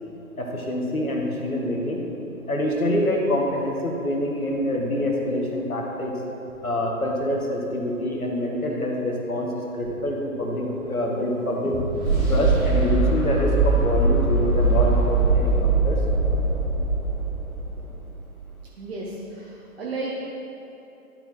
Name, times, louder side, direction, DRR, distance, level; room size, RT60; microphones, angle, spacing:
voice 1, 0.4-2.0 2.5-6.2 6.6-11.8 12.3-16.0, left 1 dB, 75° left, 0 dB, 1.6 m, -26 dB
sound 1, 9.9-17.9, right 3 dB, 10° right, 1.7 m, -22 dB
voice 2, 18.8-20.1, right 3 dB, 45° right, -5 dB, 1.2 m, -33 dB
12.0 x 4.6 x 4.3 m, 3.0 s
figure-of-eight pair, 135°, 43 cm